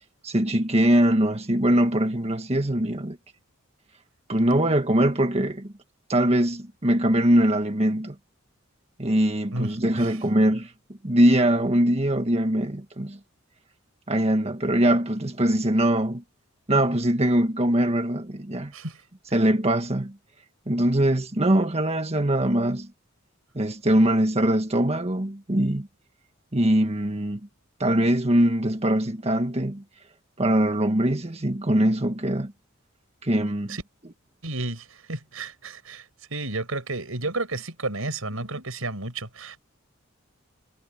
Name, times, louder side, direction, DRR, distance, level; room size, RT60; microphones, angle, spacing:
voice 1, 0.2-3.2 4.3-5.7 6.1-8.1 9.0-10.7 11.0-13.2 14.1-16.2 16.7-18.7 19.3-20.1 20.7-22.9 23.5-25.9 26.5-27.4 27.8-29.8 30.4-32.5 33.2-33.8, right 1 dB, 30° right, 1.6 m, -22 dB
voice 2, 9.5-10.2 18.7-19.0 33.7-33.8 34.4-36.1 36.3-39.6, right 2 dB, 85° right, 5.3 m, -32 dB
head